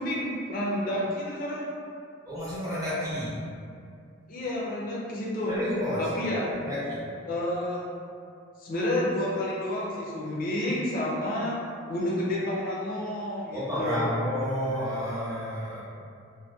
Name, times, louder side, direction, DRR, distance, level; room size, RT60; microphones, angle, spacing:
voice 1, 0.0-1.6 4.3-5.5 6.0-6.5 7.2-7.9 8.6-11.6 11.9-14.1, left 1 dB, 45° left, -5 dB, 0.4 m, -30 dB
voice 2, 2.2-3.4 5.5-6.1 6.5-7.0 13.5-15.9, left 1 dB, 15° right, -11 dB, 0.7 m, -30 dB
2.7 x 2.1 x 2.2 m, 2.3 s
head